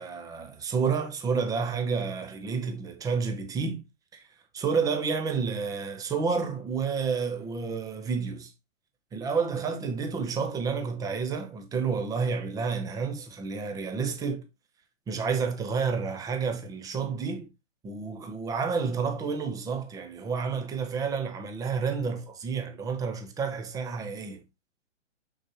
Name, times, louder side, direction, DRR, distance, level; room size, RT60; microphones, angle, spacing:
voice 1, 0.0-3.8 4.1-4.2 4.5-8.5 9.1-14.5 15.1-17.5 17.8-24.4, right 5 dB, 10° right, 1.0 m, -30 dB
6.5 x 6.2 x 3.0 m
figure-of-eight pair, 120°, 37 cm